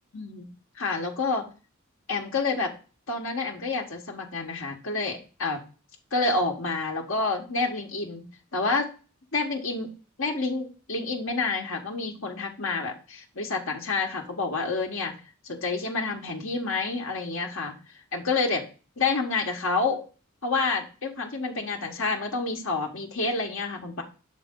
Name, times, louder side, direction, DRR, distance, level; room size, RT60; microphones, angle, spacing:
voice 1, 0.1-0.5 0.8-1.5 2.1-2.7 3.1-5.6 6.1-8.2 8.5-8.9 9.3-9.9 10.2-15.1 15.4-17.7 18.1-18.6 19.0-20.0 20.4-24.0, left 3 dB, 65° left, 0 dB, 1.2 m, -28 dB
6.6 x 4.7 x 3.7 m, 0.34 s
head